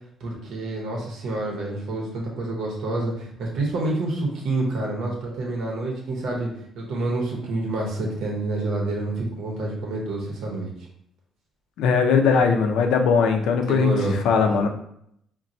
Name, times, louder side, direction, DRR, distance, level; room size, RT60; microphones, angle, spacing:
voice 1, 0.2-6.5 6.8-10.7 13.6-14.2, right 2 dB, 70° right, -1 dB, 0.8 m, -28 dB
voice 2, 11.8-14.7, left 5 dB, 85° left, 5 dB, 0.4 m, -20 dB
4.1 x 2.1 x 2.6 m, 0.72 s
cardioid pair, 160°, 0 cm